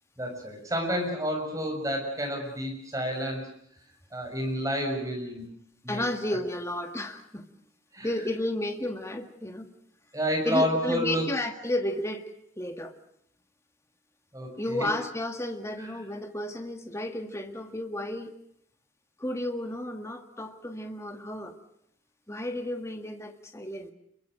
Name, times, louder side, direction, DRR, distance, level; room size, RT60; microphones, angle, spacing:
voice 1, 0.2-3.5 4.1-5.5 5.8-6.0 7.9-8.1 10.1-11.3 14.3-14.9 15.8-15.9, equal, 15° right, 2 dB, 6.7 m, -30 dB
voice 2, 5.9-7.5 8.0-9.7 10.4-12.3 12.6-12.9 14.6-18.4 19.2-21.5 22.3-23.9, left 1 dB, 15° left, 5 dB, 1.8 m, -32 dB
27.5 x 23.0 x 6.6 m, 0.70 s
head